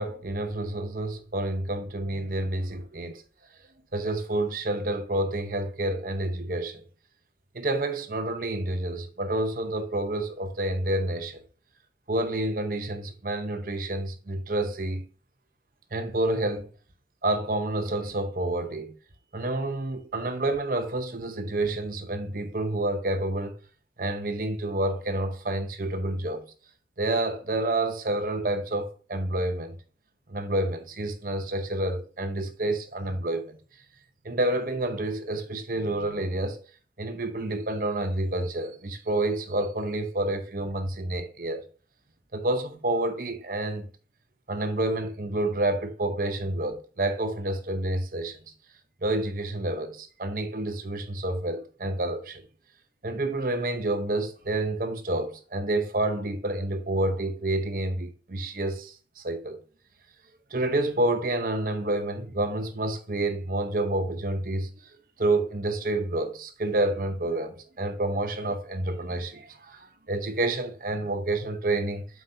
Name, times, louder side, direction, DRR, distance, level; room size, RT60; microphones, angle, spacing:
voice 1, 0.0-3.2 3.9-6.8 7.5-11.4 12.1-15.0 15.9-16.7 17.2-19.0 19.3-23.5 24.0-26.4 27.0-29.7 30.3-33.6 34.2-36.6 37.0-41.6 42.3-43.9 44.5-48.4 49.0-52.4 53.0-59.6 60.5-64.7 65.2-72.0, right 2 dB, 50° right, 0.9 m, -29 dB
7.8 x 5.2 x 2.7 m
head